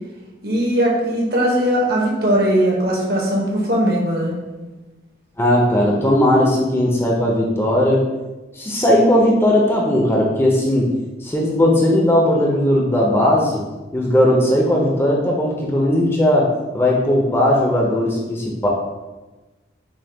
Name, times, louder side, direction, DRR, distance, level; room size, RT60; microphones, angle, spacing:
voice 1, 0.4-4.3, equal, 55° right, -2 dB, 1.0 m, -19 dB
voice 2, 5.4-8.0 8.6-10.9 11.2-13.6 13.9-18.7, left 1 dB, 15° left, -2 dB, 0.5 m, -17 dB
6.3 x 2.2 x 3.4 m, 1.2 s
head